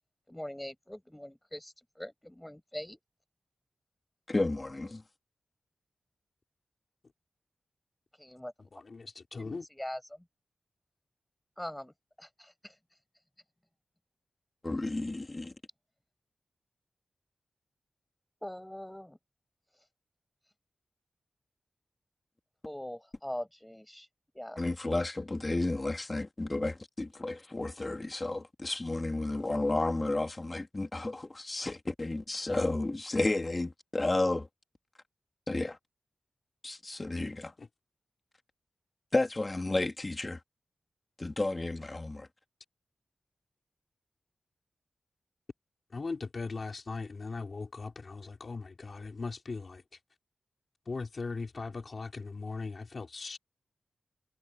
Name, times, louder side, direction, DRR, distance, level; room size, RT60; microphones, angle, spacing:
voice 1, 0.3-3.0 8.2-8.5 9.4-10.3 11.6-12.7 18.4-19.2 22.6-24.1 24.3-24.6, left 1 dB, 10° left, 7.9 m, -42 dB
voice 2, 4.3-5.0 14.6-15.5 24.6-34.5 35.5-35.8 36.6-37.5 39.1-40.4 41.2-42.3, left 2 dB, 25° left, 2.3 m, -32 dB
voice 3, 8.7-9.6 37.6-37.7 45.9-49.8 50.9-53.4, left 4 dB, 50° left, 4.1 m, -39 dB
wide cardioid pair, 100°, 0 cm